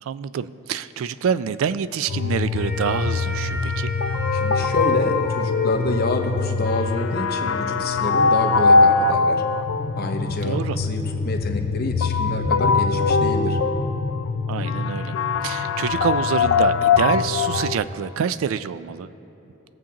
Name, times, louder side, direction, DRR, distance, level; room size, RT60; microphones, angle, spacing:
voice 1, 0.0-3.9 10.4-10.8 14.5-15.1 15.4-19.1, right 7 dB, 75° right, 15 dB, 0.3 m, -26 dB
sound 1, 2.1-17.8, left 4 dB, 70° left, 0.4 m, -22 dB
sound 2, 2.5-9.0, left 2 dB, 10° right, 1.4 m, -35 dB
voice 2, 4.3-9.4 10.0-13.6, left 2 dB, 45° left, 4 dB, 0.8 m, -28 dB
sound 3, 9.6-15.3, equal, 25° left, 1.0 m, -34 dB
21.5 x 7.2 x 2.9 m, 3.0 s
head